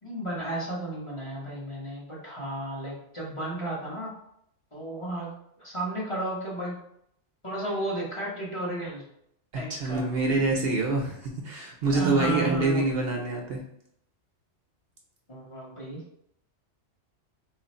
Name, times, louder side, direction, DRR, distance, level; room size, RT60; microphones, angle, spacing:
voice 1, 0.0-4.1 4.7-5.3 5.6-6.8 7.4-9.0 9.5-10.0 11.9-12.8 15.3-16.0, right 1 dB, 30° left, -6 dB, 0.8 m, -33 dB
voice 2, 9.5-13.6, right 2 dB, 60° right, 0 dB, 0.7 m, -26 dB
3.1 x 2.5 x 4.1 m, 0.73 s
omnidirectional pair, 1.2 m